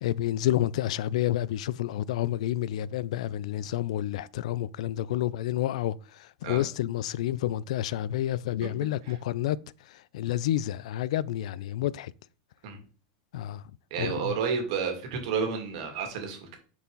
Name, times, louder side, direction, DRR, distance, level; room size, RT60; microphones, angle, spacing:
voice 1, 0.0-9.6 9.9-12.1 13.3-13.6 14.0-14.3, left 13 dB, 75° left, 0.3 m, -29 dB
voice 2, 13.9-16.6, right 6 dB, 65° right, 2.2 m, -31 dB
6.9 x 4.6 x 3.9 m
supercardioid pair, 130°, 4 cm